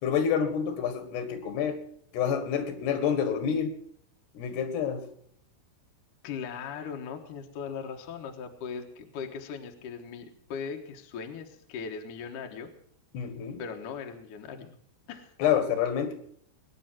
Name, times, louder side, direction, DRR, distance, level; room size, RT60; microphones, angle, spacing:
voice 1, 0.0-1.8 2.1-3.8 4.4-5.1 13.1-13.6 15.4-16.1, left 8 dB, 80° left, 8 dB, 3.9 m, -28 dB
voice 2, 6.2-12.7 13.6-14.8 15.1-15.3, left 6 dB, 60° left, 3 dB, 2.6 m, -39 dB
21.0 x 10.0 x 6.0 m, 0.64 s
omnidirectional pair, 4.7 m